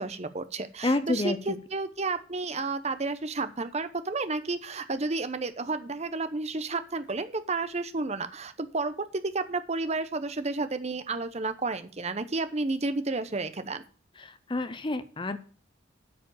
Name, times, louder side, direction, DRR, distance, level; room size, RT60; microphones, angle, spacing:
voice 1, 0.0-13.8, right 3 dB, 35° right, 11 dB, 0.8 m, -31 dB
voice 2, 0.8-1.4 14.2-15.4, left 2 dB, 25° left, 12 dB, 0.6 m, -29 dB
8.6 x 5.1 x 7.1 m, 0.42 s
head